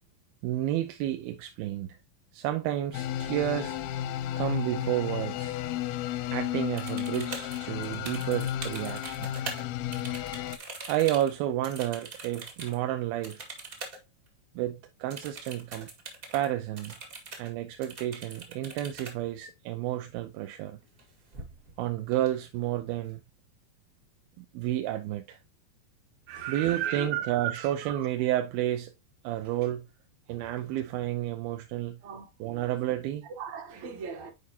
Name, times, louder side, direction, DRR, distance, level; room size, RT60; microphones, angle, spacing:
voice 1, 0.4-2.0 2.3-3.8 4.3-5.6 6.3-9.3 10.9-13.5 14.6-15.9 16.3-16.9 17.4-20.8 21.8-23.2 24.4-25.4 26.5-28.9 29.2-29.8 30.3-32.0 32.4-33.3, right 13 dB, 85° right, 2.5 m, -31 dB
sound 1, 2.9-10.6, left 12 dB, 90° left, 2.6 m, -33 dB
sound 2, 6.8-9.6 9.9-12.8 13.2-14.0 14.3-14.4 15.1-16.5 16.8-17.5 17.8-19.1 20.8-21.0 21.3-21.8 22.1-22.8, right 3 dB, 50° right, 1.0 m, -42 dB
voice 2, 26.3-28.1 30.3-30.4 32.0-32.6 33.4-34.3, right 10 dB, 65° right, 2.1 m, -36 dB
8.7 x 4.8 x 2.8 m
omnidirectional pair, 4.2 m